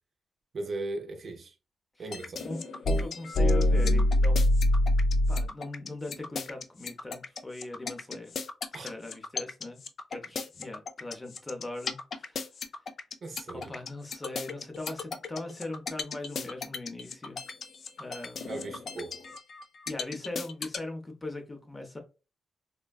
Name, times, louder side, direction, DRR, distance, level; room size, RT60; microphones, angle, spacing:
voice 1, 0.5-1.5 2.0-2.5 8.7-8.9 13.2-13.7 18.5-19.3, right 2 dB, 50° right, 0.6 m, -37 dB
sound 1, 2.1-20.8, left 1 dB, 55° left, 0.3 m, -27 dB
voice 2, 2.9-4.4 5.3-8.3 8.8-9.8 10.1-12.5 13.5-17.4 18.0-18.8 19.9-22.0, left 2 dB, 20° left, 0.6 m, -40 dB
3.3 x 2.1 x 2.3 m
cardioid pair, 125°, 0 cm